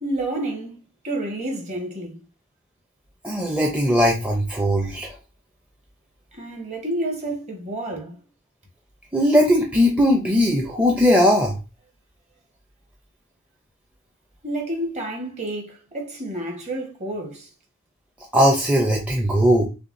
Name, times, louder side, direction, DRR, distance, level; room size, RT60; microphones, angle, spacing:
voice 1, 0.0-0.7 1.0-2.2 6.3-8.2 14.4-17.5, right 1 dB, 30° right, 1.4 m, -29 dB
voice 2, 3.2-5.1 9.1-11.6 18.3-19.6, equal, 5° right, 0.6 m, -19 dB
6.7 x 2.3 x 2.6 m
head